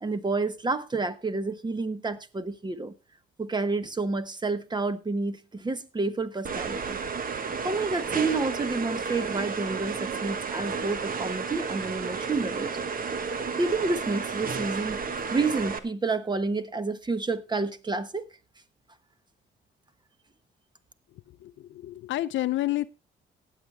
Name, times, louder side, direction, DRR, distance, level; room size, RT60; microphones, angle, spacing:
voice 1, 0.0-2.9 3.4-7.0 7.4-12.9 13.6-15.0 15.3-18.3, right 3 dB, 20° right, 1.2 m, -29 dB
sound 1, 6.4-15.8, right 5 dB, 45° right, 1.2 m, -32 dB
voice 2, 21.4-22.9, left 15 dB, 70° left, 0.5 m, -29 dB
18.5 x 7.7 x 3.4 m
cardioid pair, 90°, 20 cm